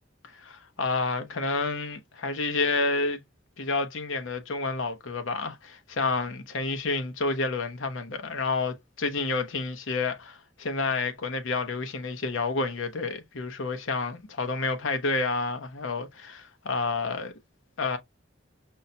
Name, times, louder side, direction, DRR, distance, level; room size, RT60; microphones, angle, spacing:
voice 1, 0.2-3.2 3.6-17.3 17.8-18.0, left 3 dB, 80° left, 0.8 m, -29 dB
5.5 x 2.1 x 2.7 m
head